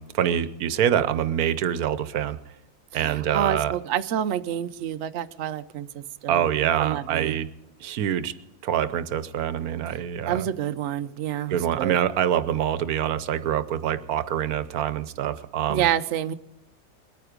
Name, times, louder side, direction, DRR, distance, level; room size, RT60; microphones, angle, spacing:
voice 1, 0.0-2.4 2.9-3.8 6.3-7.5 7.8-8.4 8.6-10.5 11.5-15.9, right 10 dB, 80° right, 14 dB, 1.3 m, -25 dB
voice 2, 3.0-6.4 6.8-7.4 10.3-12.0 15.7-16.3, right 10 dB, 60° right, 12 dB, 0.9 m, -28 dB
21.5 x 9.4 x 5.0 m, 0.90 s
omnidirectional pair, 1.5 m